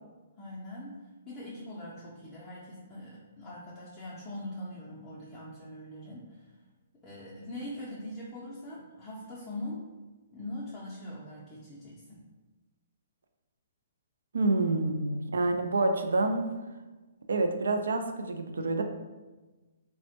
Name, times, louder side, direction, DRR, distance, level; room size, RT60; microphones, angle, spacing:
voice 1, 0.4-6.6 7.0-9.9 10.3-12.2, left 1 dB, 20° left, -7 dB, 0.4 m, -42 dB
voice 2, 14.3-16.5 17.3-18.8, right 2 dB, 90° right, 6 dB, 0.3 m, -27 dB
3.2 x 2.1 x 2.7 m, 1.2 s
hypercardioid pair, 155°, 0 cm